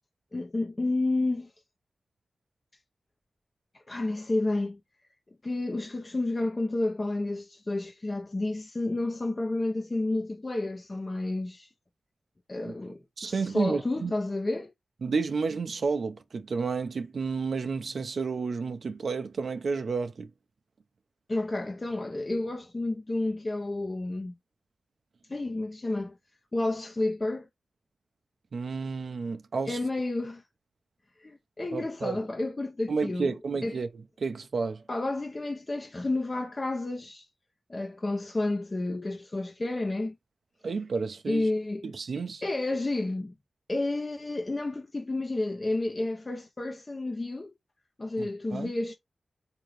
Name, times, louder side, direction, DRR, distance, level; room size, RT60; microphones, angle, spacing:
voice 1, 0.3-1.5 3.7-4.8 5.4-11.7 12.5-14.7 21.3-24.3 25.3-26.2 26.5-27.5 29.7-30.4 31.2-33.3 33.6-33.8 34.9-37.3 37.7-40.1 41.3-41.9 42.4-43.3 43.7-47.5 48.0-48.9, left 2 dB, 40° left, 0.8 m, -31 dB
voice 2, 13.2-14.1 15.0-20.3 28.5-29.8 31.7-32.2 32.9-33.9 34.2-34.8 40.6-41.4 41.8-42.4 48.2-48.7, right 4 dB, 75° right, 0.6 m, -31 dB
3.7 x 2.8 x 3.1 m
cardioid pair, 50°, 0 cm